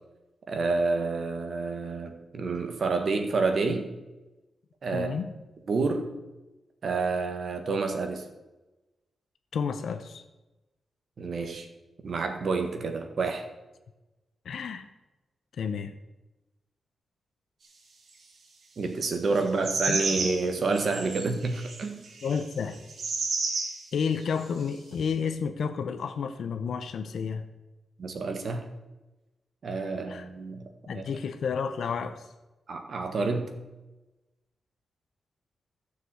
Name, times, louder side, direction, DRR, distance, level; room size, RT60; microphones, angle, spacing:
voice 1, 0.5-3.9 4.8-5.2 5.7-6.1 6.8-8.2 11.2-11.7 12.0-13.4 18.8-22.0 28.0-28.7 29.6-30.6 30.9-31.0 32.7-33.6, right 3 dB, 50° right, 6 dB, 1.4 m, -29 dB
voice 2, 4.9-5.3 9.5-10.2 14.4-14.9 15.6-15.9 19.9-20.0 22.2-22.8 23.9-27.4 30.1-30.3 30.9-32.2, left 6 dB, 70° left, 9 dB, 0.8 m, -31 dB
sound 1, 19.6-20.5 20.7-23.8 24.4-24.5, right 3 dB, 65° right, 2.2 m, -31 dB
12.5 x 6.7 x 8.0 m, 1.1 s
wide cardioid pair, 170°, 0 cm